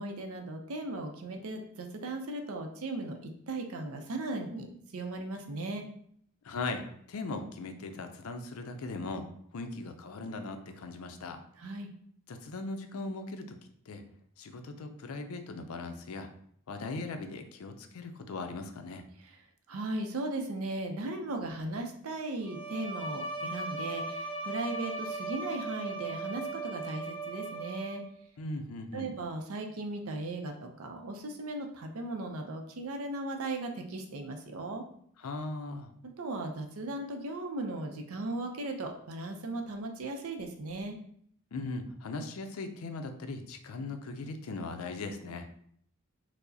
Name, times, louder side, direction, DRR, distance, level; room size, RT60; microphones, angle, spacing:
voice 1, 0.0-5.8 11.6-11.9 19.2-19.4 19.7-28.0 28.9-34.8 36.0-41.0, right 2 dB, 70° right, 4 dB, 0.5 m, -37 dB
voice 2, 6.4-9.3 9.5-11.4 12.3-13.6 13.9-14.0 14.4-16.3 16.7-19.0 28.4-29.2 35.2-35.9 41.5-45.5, left 3 dB, 70° left, 6 dB, 0.4 m, -39 dB
Bowed string instrument, 22.4-28.2, right 3 dB, 20° left, 0.6 m, -38 dB
4.6 x 2.0 x 2.7 m, 0.66 s
head